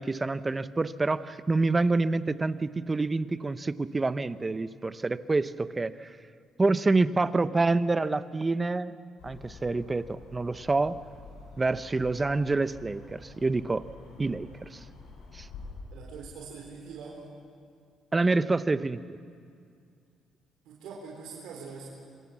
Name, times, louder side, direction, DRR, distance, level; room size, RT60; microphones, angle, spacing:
voice 1, 0.0-6.2 6.6-8.9 9.2-11.0 11.6-13.8 14.2-14.8 15.3-15.5 18.1-19.2, right 3 dB, 20° right, 13 dB, 0.8 m, -27 dB
sound 1, 9.2-15.7, left 3 dB, 75° left, 7.7 m, -49 dB
voice 2, 15.9-17.2 20.6-21.9, right 5 dB, 85° right, -3 dB, 4.3 m, -43 dB
27.0 x 23.0 x 7.3 m, 2.3 s
cardioid pair, 115°, 0 cm